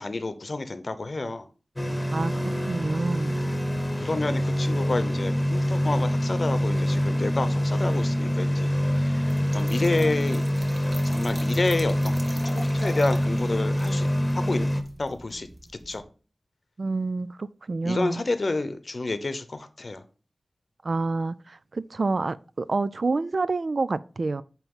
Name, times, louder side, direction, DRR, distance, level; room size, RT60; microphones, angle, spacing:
voice 1, 0.0-1.5 4.0-10.4 11.0-14.1 14.3-14.7 15.0-15.5 15.9-16.0 17.8-20.0, left 2 dB, 55° left, 0.8 m, -29 dB
sound 1, 1.8-14.8, equal, 20° left, 1.1 m, -25 dB
voice 2, 2.6-3.4 16.8-18.2 20.8-24.4, right 3 dB, 65° right, 0.3 m, -28 dB
Trickle dribble / Fill (with liquid), 9.3-16.0, right 1 dB, 50° right, 1.6 m, -43 dB
8.9 x 3.0 x 5.4 m
wide cardioid pair, 60°, 0 cm